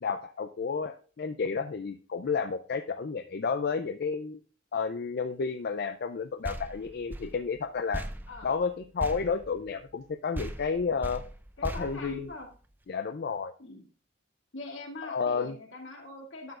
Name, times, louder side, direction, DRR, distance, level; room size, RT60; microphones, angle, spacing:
voice 1, 0.0-4.4 4.7-8.0 8.4-11.2 11.6-12.3 12.9-13.5 15.0-15.6, left 5 dB, 55° left, 8 dB, 0.4 m, -31 dB
sound 1, 6.4-10.1 10.3-12.8, right 1 dB, 10° right, 0.4 m, -40 dB
voice 2, 11.6-12.5 13.6-13.8 14.5-16.5, left 2 dB, 75° left, 0 dB, 2.3 m, -43 dB
11.5 x 6.8 x 2.5 m, 0.39 s
head